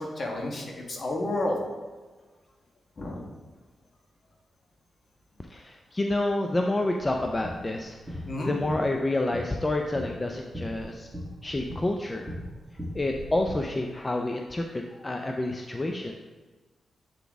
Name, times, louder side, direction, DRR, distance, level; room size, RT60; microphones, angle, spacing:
voice 1, 0.0-1.6 3.0-3.2 8.2-8.5, left 1 dB, 50° left, 0 dB, 1.4 m, -31 dB
voice 2, 5.5-11.1 11.4-12.3 12.9-16.1, left 2 dB, 25° left, 3 dB, 0.5 m, -29 dB
sound 1, 7.0-13.5, equal, 10° right, 1.9 m, -40 dB
8.1 x 4.0 x 3.5 m, 1.3 s
cardioid pair, 70°, 0 cm